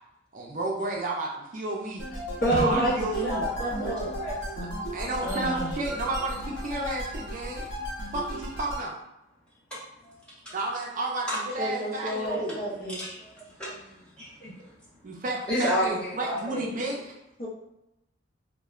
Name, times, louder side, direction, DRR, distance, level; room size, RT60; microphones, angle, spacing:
voice 1, 0.3-2.0 2.6-3.4 4.6-7.6 8.1-8.9 10.5-12.6 15.0-17.1, right 2 dB, 45° right, -1 dB, 0.4 m, -32 dB
sound 1, 2.0-8.9, equal, 85° left, 0.8 m, -34 dB
voice 2, 2.4-3.3 3.6-4.1 11.6-13.2 17.4-17.5, right 1 dB, 50° left, -4 dB, 0.7 m, -29 dB
voice 3, 4.0-4.4 5.2-5.7 9.7-9.8 10.0-10.1 10.4-10.5 11.3-11.4 12.5-14.5 15.5-16.7, equal, 5° left, -10 dB, 0.9 m, -31 dB
3.0 x 2.1 x 2.3 m, 0.89 s
head